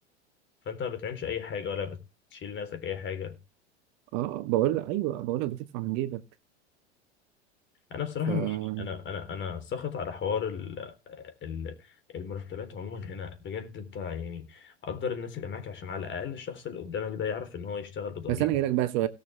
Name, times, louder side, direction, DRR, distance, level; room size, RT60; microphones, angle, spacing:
voice 1, 0.7-2.0 2.3-3.4 7.9-11.8 12.1-18.5, left 7 dB, 35° left, 3.6 m, -35 dB
voice 2, 4.1-6.2 8.3-8.9 18.3-19.1, right 14 dB, 55° right, 1.3 m, -28 dB
18.0 x 7.1 x 3.4 m
hypercardioid pair, 95°, 35 cm